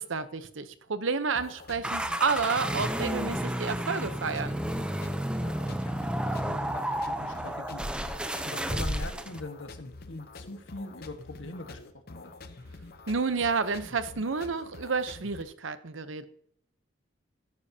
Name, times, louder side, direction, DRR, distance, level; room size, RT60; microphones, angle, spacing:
voice 1, 0.0-4.5 13.1-16.2, right 4 dB, 80° right, 12 dB, 0.8 m, -30 dB
sound 1, 1.3-15.4, left 3 dB, 50° left, 0.7 m, -47 dB
sound 2, 1.8-9.4, right 1 dB, 5° right, 0.6 m, -31 dB
voice 2, 5.7-7.9 8.1-11.8 12.1-12.3, left 2 dB, 75° left, 6 dB, 1.4 m, -42 dB
13.5 x 10.5 x 2.8 m, 0.66 s
head